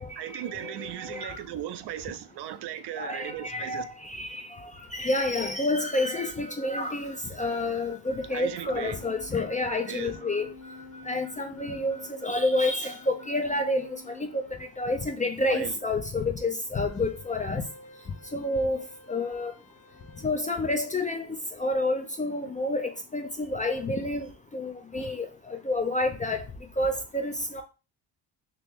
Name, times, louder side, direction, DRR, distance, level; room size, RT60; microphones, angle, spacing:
voice 1, 0.0-3.9 8.3-9.0 9.9-10.2 15.5-15.8 22.4-22.5 24.9-25.1, right 11 dB, 60° right, 0.5 m, -37 dB
voice 2, 0.6-1.4 3.0-10.5 11.1-17.6 18.3-18.8 19.1-19.5 20.2-26.4 26.8-27.6, left 2 dB, 15° left, 0.4 m, -29 dB
Harmonica, 5.8-13.4, left 1 dB, 50° left, 1.1 m, -50 dB
sound 1, 8.8-14.9 16.8-20.2, left 2 dB, 75° left, 1.2 m, -50 dB
2.9 x 2.9 x 3.5 m
supercardioid pair, 85°, 48 cm